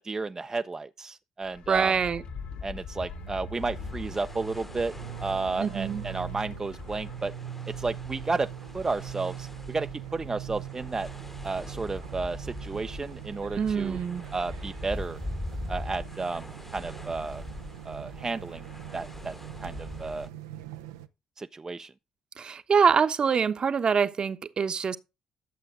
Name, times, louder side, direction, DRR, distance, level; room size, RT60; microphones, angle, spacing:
voice 1, 0.0-1.9 2.6-4.9 5.2-7.3 7.7-11.1 11.4-14.0 14.3-15.2 15.7-16.5 16.7-17.4 17.9-18.6 18.9-19.3 19.6-20.3 21.4-21.9, right 3 dB, 30° right, 0.5 m, -32 dB
sound 1, 1.4-7.2, left 6 dB, 65° left, 2.0 m, -43 dB
voice 2, 1.7-2.2 5.6-6.0 13.6-14.2 22.4-25.0, right 6 dB, 50° right, 1.0 m, -25 dB
sound 2, 1.9-21.1, right 11 dB, 90° right, 0.6 m, -42 dB
sound 3, 3.5-20.3, left 1 dB, 10° left, 1.0 m, -42 dB
11.5 x 7.5 x 3.7 m
hypercardioid pair, 50°, 2 cm